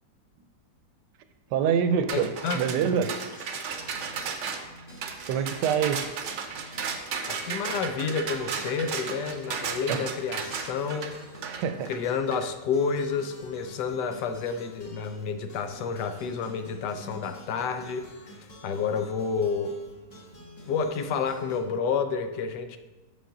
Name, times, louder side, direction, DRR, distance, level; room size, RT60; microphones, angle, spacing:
voice 1, 1.5-2.3 2.5-3.1 5.3-6.0 9.9-10.0 11.5-11.9, right 7 dB, 80° right, 9 dB, 1.2 m, -25 dB
voice 2, 2.1-2.6 7.2-11.2 11.8-19.8 20.6-22.8, left 5 dB, 85° left, 8 dB, 1.2 m, -30 dB
sound 1, 2.1-12.5, right 6 dB, 60° right, 0.8 m, -34 dB
sound 2, 3.0-21.6, equal, 30° left, 0.8 m, -49 dB
6.7 x 5.3 x 3.8 m, 1.2 s
omnidirectional pair, 1.8 m